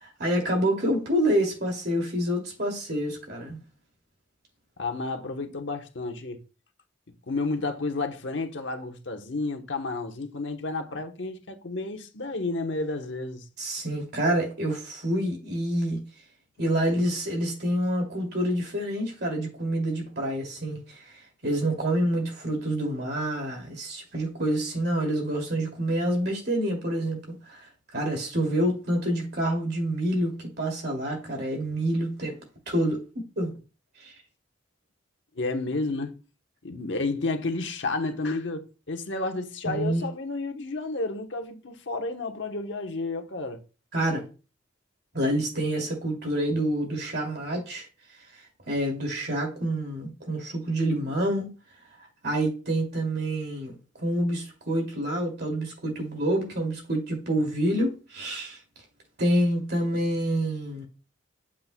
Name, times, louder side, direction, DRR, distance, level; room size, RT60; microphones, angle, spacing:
voice 1, 0.0-3.6 13.6-16.0 16.6-20.8 21.4-27.2 27.5-27.6 27.9-32.4 32.7-33.0 33.4-33.5 34.0-34.1 39.6-40.1 43.9-44.2 45.1-47.9 48.7-51.5 52.2-58.6 59.2-60.8, right 1 dB, 60° right, 2.5 m, -27 dB
voice 2, 4.8-6.4 7.3-13.5 35.3-36.2 36.6-43.6, left 3 dB, 70° left, 1.1 m, -31 dB
8.4 x 7.3 x 2.2 m
head